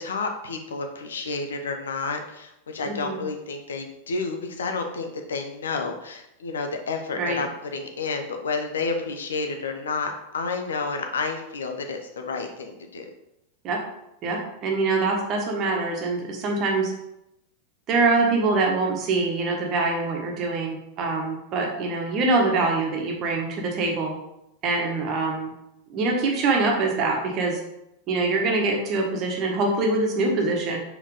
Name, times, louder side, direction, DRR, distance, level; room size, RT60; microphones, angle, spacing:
voice 1, 0.0-13.1, left 4 dB, 65° left, 5 dB, 0.9 m, -30 dB
voice 2, 2.9-3.2 7.2-7.4 13.6-13.8 14.2-16.9 17.9-24.1 24.6-25.5 25.9-27.6 28.1-30.8, right 3 dB, 35° right, 0 dB, 1.5 m, -24 dB
4.9 x 4.5 x 5.1 m, 0.85 s
figure-of-eight pair, 90°, 0 cm